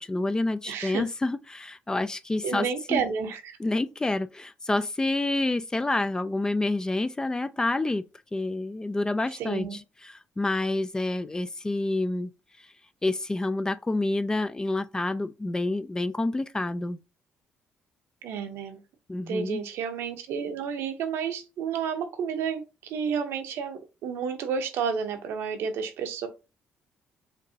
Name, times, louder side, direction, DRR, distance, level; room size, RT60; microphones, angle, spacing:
voice 1, 0.0-3.0 3.6-8.0 8.3-12.3 13.0-17.0 19.1-19.6, left 2 dB, 15° left, 0.3 m, -28 dB
voice 2, 0.7-1.0 2.4-3.6 9.4-9.8 18.2-18.8 19.3-26.3, right 6 dB, 80° right, 0.8 m, -31 dB
5.2 x 2.6 x 2.8 m
cardioid pair, 80°, 4 cm